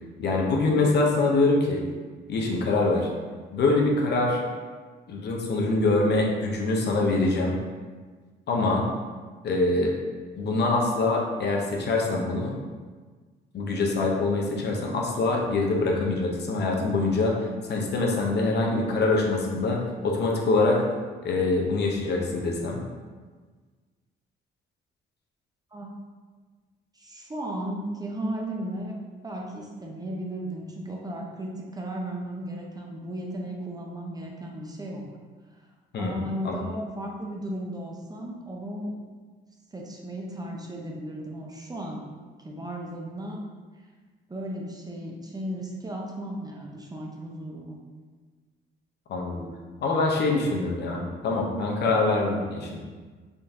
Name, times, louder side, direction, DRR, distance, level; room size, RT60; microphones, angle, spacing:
voice 1, 0.2-1.8 2.3-3.1 3.5-4.4 5.1-7.6 8.5-8.9 9.4-9.9 10.4-12.5 13.5-17.3 17.7-20.8 21.2-22.8 35.9-36.6 49.1-49.4 49.8-52.8, left 3 dB, 60° left, 0 dB, 0.7 m, -24 dB
voice 2, 26.9-29.0 29.2-35.0 35.9-39.0 39.7-42.1 42.4-43.4 44.3-47.8, right 1 dB, 20° right, -1 dB, 0.6 m, -35 dB
3.8 x 2.6 x 3.5 m, 1.4 s
cardioid pair, 90°, 20 cm